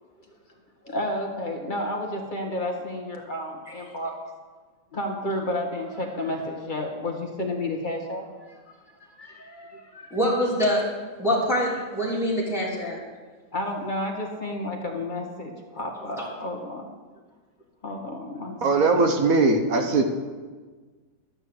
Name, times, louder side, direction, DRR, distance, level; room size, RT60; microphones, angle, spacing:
voice 1, 0.8-4.1 4.9-8.6 9.0-10.4 13.5-16.9 17.8-19.1, left 1 dB, 30° left, 1 dB, 1.4 m, -31 dB
voice 2, 10.1-10.8 11.2-13.0, equal, ahead, -6 dB, 3.2 m, -24 dB
voice 3, 18.6-20.0, right 3 dB, 55° right, 6 dB, 1.3 m, -20 dB
12.0 x 6.7 x 7.8 m, 1.4 s
omnidirectional pair, 2.0 m